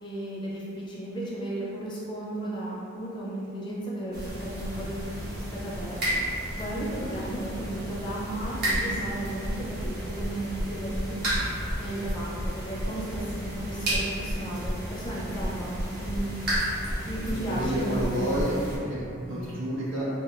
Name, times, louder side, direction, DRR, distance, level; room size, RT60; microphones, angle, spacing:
voice 1, 0.0-6.0 6.5-11.2 11.8-16.3 17.0-18.9, right 1 dB, 25° left, -6 dB, 0.6 m, -34 dB
sound 1, 4.1-18.8, equal, 50° right, 1.2 m, -32 dB
voice 2, 17.3-18.5 18.8-20.0, equal, 70° right, -10 dB, 1.4 m, -30 dB
4.9 x 2.5 x 2.4 m, 2.6 s
head